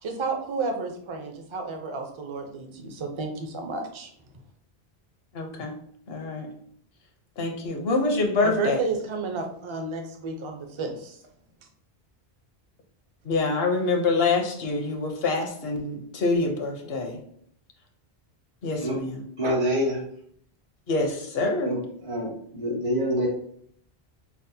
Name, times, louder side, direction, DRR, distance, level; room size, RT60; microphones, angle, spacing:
voice 1, 0.0-4.1 8.4-11.2 19.4-19.6, right 4 dB, 40° right, 4 dB, 0.5 m, -31 dB
voice 2, 5.3-5.7 6.1-6.5 7.4-8.8 13.2-17.2 18.6-19.2 20.9-21.8, left 3 dB, 70° left, 3 dB, 1.0 m, -26 dB
voice 3, 19.4-20.0 21.6-23.3, equal, 85° right, -4 dB, 2.0 m, -26 dB
5.7 x 2.0 x 2.7 m, 0.64 s
omnidirectional pair, 1.1 m